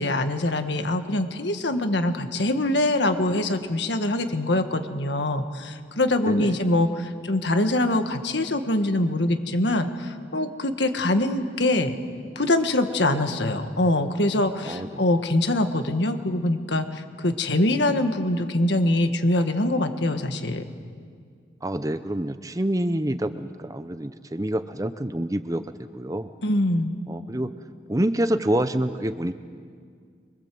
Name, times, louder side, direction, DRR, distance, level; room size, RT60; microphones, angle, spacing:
voice 1, 0.0-12.0 12.3-20.7 26.4-26.9, left 1 dB, 70° left, 7 dB, 1.6 m, -24 dB
voice 2, 6.3-6.6 13.1-13.2 14.7-15.0 21.6-25.6 25.9-26.3 27.1-27.5 27.9-29.3, right 1 dB, 20° right, 11 dB, 0.7 m, -27 dB
25.5 x 23.5 x 7.8 m, 2.1 s
head